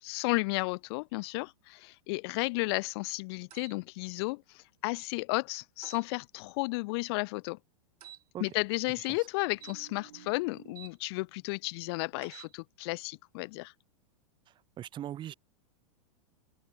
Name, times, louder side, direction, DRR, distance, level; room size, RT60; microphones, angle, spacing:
voice 1, 0.0-7.6 8.4-13.7, left 26 dB, 40° left, 0.5 m, -33 dB
sound 1, 3.5-3.8 5.8-6.1 8.0-8.2 9.6-10.9 12.2-12.5, right 11 dB, 75° right, 6.1 m, -50 dB
voice 2, 14.8-15.3, right 11 dB, 25° right, 2.4 m, -39 dB
open air
supercardioid pair, 145°, 20 cm